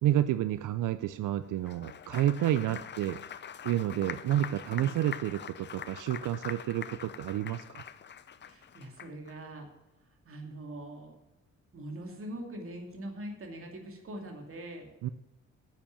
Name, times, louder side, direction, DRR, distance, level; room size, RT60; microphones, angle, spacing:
voice 1, 0.0-3.2 3.6-7.8 15.0-15.1, right 12 dB, 90° right, 13 dB, 0.5 m, -30 dB
Applause, 1.5-9.3, left 8 dB, 35° left, 0.5 m, -44 dB
voice 2, 8.4-9.7 10.2-11.2 11.7-14.9, right 1 dB, 45° right, 3 dB, 2.5 m, -43 dB
10.5 x 7.4 x 7.1 m, 0.93 s
wide cardioid pair, 155°, 30 cm